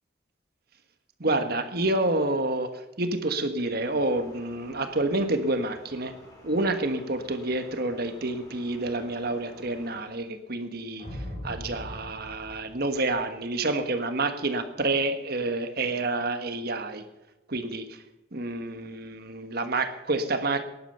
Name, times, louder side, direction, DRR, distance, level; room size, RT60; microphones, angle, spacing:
voice 1, 1.2-6.1 6.4-17.0 17.5-18.0 18.3-20.6, right 2 dB, 50° right, 8 dB, 1.4 m, -28 dB
sound 1, 3.8-10.0, left 1 dB, 20° left, 5.4 m, -51 dB
sound 2, 11.0-13.5, equal, 35° left, 4.1 m, -40 dB
18.0 x 11.0 x 6.8 m, 1.0 s
head